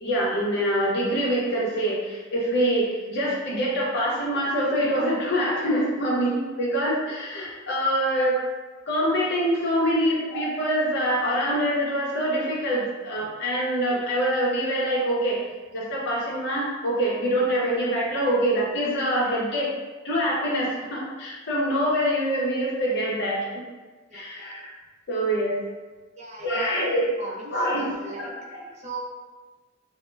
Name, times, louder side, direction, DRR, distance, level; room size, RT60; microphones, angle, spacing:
voice 1, 0.0-8.3 8.9-15.4 15.7-19.7 20.0-23.6 24.1-24.7 25.1-25.6 26.4-27.1 27.5-27.9 28.2-28.6, equal, 60° left, -5 dB, 0.7 m, -25 dB
voice 2, 26.2-26.7 27.2-28.3 28.7-29.0, right 3 dB, 35° right, -2 dB, 0.4 m, -38 dB
2.1 x 2.1 x 3.1 m, 1.3 s
head